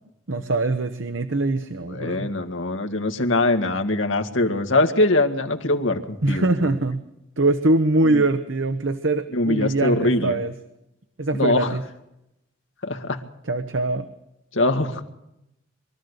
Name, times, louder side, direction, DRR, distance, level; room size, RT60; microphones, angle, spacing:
voice 1, 0.3-2.3 6.2-7.0 7.4-10.5 11.2-11.8 13.4-14.1, right 2 dB, 75° right, 9 dB, 1.1 m, -23 dB
voice 2, 1.9-6.7 8.1-8.2 9.3-10.3 11.3-11.7 12.8-13.2 14.5-15.0, left 2 dB, 75° left, 5 dB, 2.0 m, -22 dB
23.0 x 13.5 x 8.2 m, 0.84 s
head